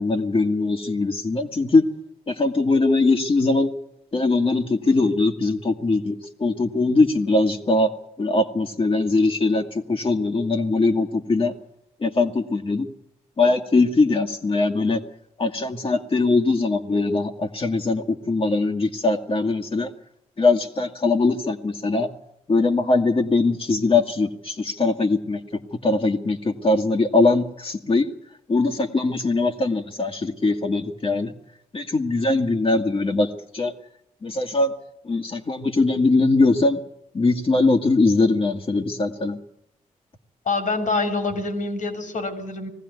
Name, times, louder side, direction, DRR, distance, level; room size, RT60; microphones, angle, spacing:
voice 1, 0.0-1.8 2.3-3.7 4.1-7.9 8.2-11.5 12.0-12.9 13.4-15.0 15.4-19.9 20.4-22.1 22.5-28.1 28.5-31.3 31.7-33.7 34.2-34.7 35.1-36.8 37.1-39.4, left 3 dB, 40° left, 2 dB, 1.9 m, -21 dB
voice 2, 40.5-42.7, left 3 dB, 65° left, 6 dB, 3.7 m, -25 dB
20.0 x 15.0 x 9.5 m, 0.77 s
supercardioid pair, 55°, 14 cm